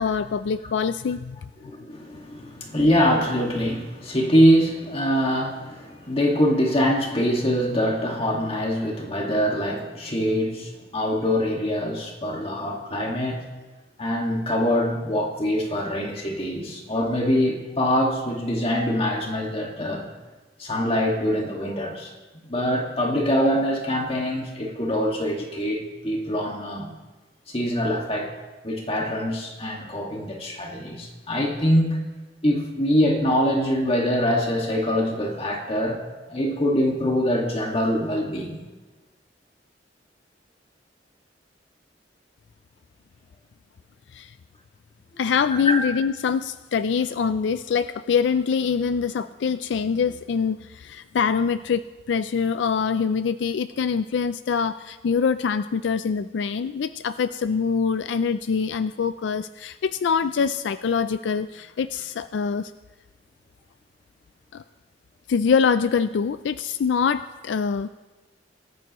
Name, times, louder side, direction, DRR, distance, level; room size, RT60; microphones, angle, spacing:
voice 1, 0.0-1.5 44.1-44.3 45.2-62.7 64.5-64.6 65.3-67.9, left 6 dB, 80° left, 12 dB, 0.4 m, -24 dB
voice 2, 1.6-13.5 14.0-20.1 20.6-22.1 22.5-26.9 27.5-28.4 28.6-32.0 32.4-36.0 36.3-38.6 45.7-45.8, equal, 35° left, 0 dB, 1.9 m, -24 dB
25.0 x 14.0 x 3.0 m, 1.2 s
head